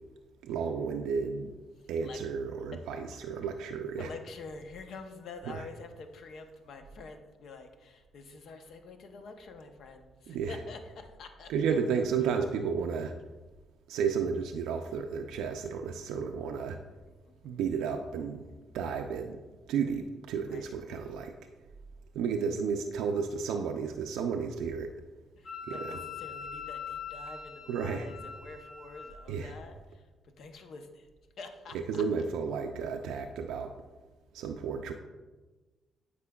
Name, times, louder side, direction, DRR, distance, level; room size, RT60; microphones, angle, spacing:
voice 1, 0.4-1.5 1.9-4.1 5.5-5.6 10.3-10.6 11.5-13.1 13.9-16.8 17.4-18.4 18.7-19.4 19.7-21.3 22.1-25.0 25.7-26.0 27.7-28.1 29.3-29.5 31.9-33.7 34.3-34.9, right 6 dB, 90° right, 4 dB, 0.4 m, -32 dB
voice 2, 4.0-11.5 17.0-17.6 20.5-20.7 25.4-30.1 30.4-31.1 31.4-32.0, left 4 dB, 70° left, 6 dB, 0.6 m, -47 dB
Wind instrument woodwind instrument, 25.4-29.2, left 6 dB, 35° left, 1.0 m, -42 dB
8.3 x 5.0 x 2.3 m, 1.2 s
cardioid pair, 90°, 0 cm